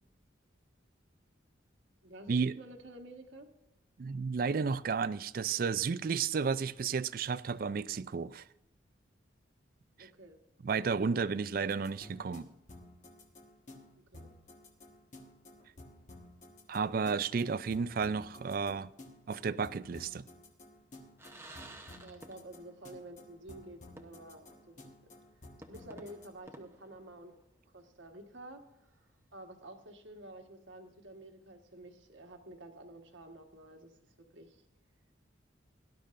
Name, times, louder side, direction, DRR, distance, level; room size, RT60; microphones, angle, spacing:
voice 1, 2.0-3.5 6.6-6.9 10.0-10.4 11.0-11.2 14.1-14.3 22.0-24.9 25.7-27.4 27.7-34.6, right 1 dB, 80° right, 1.5 m, -51 dB
voice 2, 4.0-8.4 10.0-10.1 10.6-12.5 16.7-18.9 19.3-20.2, right 5 dB, 50° right, 0.4 m, -32 dB
sound 1, 11.7-26.3, left 1 dB, 40° left, 1.3 m, -54 dB
sound 2, 21.2-22.8 23.1-23.2 24.0-24.5 24.8-24.9 25.6-27.6, right 1 dB, 15° right, 0.8 m, -53 dB
17.5 x 12.0 x 2.6 m
head